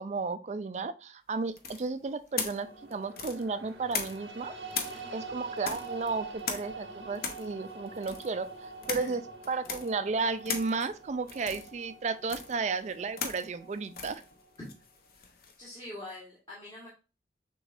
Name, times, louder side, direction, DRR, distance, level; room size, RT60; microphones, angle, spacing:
voice 1, 0.0-4.5 5.1-9.2 9.5-14.2, right 4 dB, 40° right, 11 dB, 0.4 m, -33 dB
sound 1, 1.6-4.4 4.7-15.7, left 5 dB, 55° left, 0.7 m, -39 dB
sound 2, 2.6-14.8, right 4 dB, 80° right, 0.8 m, -45 dB
voice 2, 4.9-5.2 8.9-9.1 14.6-14.7 15.6-16.9, left 1 dB, 25° left, -7 dB, 1.4 m, -44 dB
6.3 x 3.1 x 2.5 m, 0.31 s
head